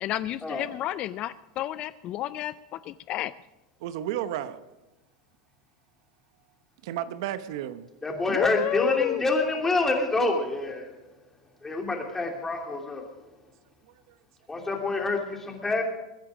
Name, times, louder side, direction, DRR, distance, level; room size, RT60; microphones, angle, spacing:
voice 1, 0.0-3.3 8.3-9.2, left 13 dB, 40° left, 16 dB, 0.4 m, -30 dB
voice 2, 3.8-4.6 6.8-7.8 13.9-14.2, right 12 dB, 70° right, 12 dB, 0.9 m, -33 dB
voice 3, 8.0-10.9 11.6-13.0 14.5-15.8, left 2 dB, 15° left, 2 dB, 3.0 m, -27 dB
21.5 x 10.0 x 5.0 m, 1.1 s
supercardioid pair, 120°, 3 cm